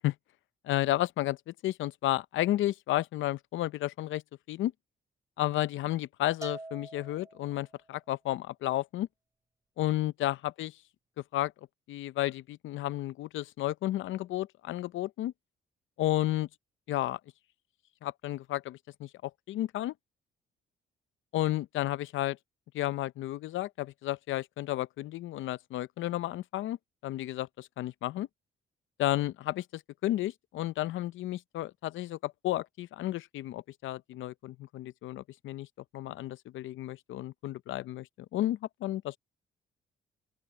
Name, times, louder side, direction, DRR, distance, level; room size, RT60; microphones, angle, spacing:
voice 1, 0.6-4.2 4.5-4.7 5.4-9.1 9.8-10.7 11.3-11.5 11.9-15.3 16.0-16.5 16.9-17.2 18.0-19.9 21.3-22.4 22.7-26.8 27.0-28.3 29.0-35.7 35.9-38.1 38.3-39.2, left 15 dB, 80° left, 0.6 m, -32 dB
Bell, 6.4-7.8, right 2 dB, 15° right, 3.8 m, -44 dB
open air
cardioid pair, 90°, 20 cm